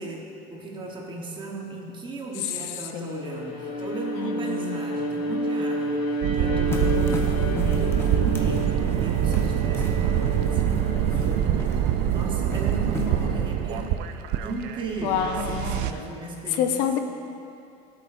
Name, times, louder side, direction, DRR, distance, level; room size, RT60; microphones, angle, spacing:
voice 1, 0.0-14.0 14.4-17.0, right 3 dB, 25° right, 0 dB, 1.2 m, -36 dB
voice 2, 2.4-3.3 4.1-4.8 13.1-13.5 15.0-16.1 16.5-17.0, left 8 dB, 75° left, 6 dB, 0.7 m, -29 dB
Bowed string instrument, 3.2-11.6, equal, 55° left, 1.9 m, -30 dB
sound 1, 6.2-15.9, right 10 dB, 65° right, 0.5 m, -25 dB
sound 2, 6.7-13.5, left 2 dB, 15° left, 1.0 m, -37 dB
14.0 x 8.2 x 2.7 m, 2.5 s
cardioid pair, 130°, 18 cm